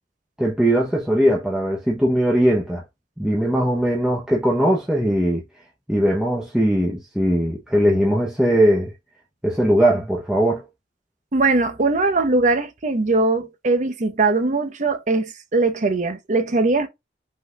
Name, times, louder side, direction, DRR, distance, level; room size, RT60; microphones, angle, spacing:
voice 1, 0.4-2.8 3.2-5.4 5.9-8.9 9.4-10.6, equal, 5° right, 0.8 m, -19 dB
voice 2, 11.3-16.9, right 3 dB, 45° right, 0.8 m, -20 dB
5.6 x 4.0 x 2.4 m
head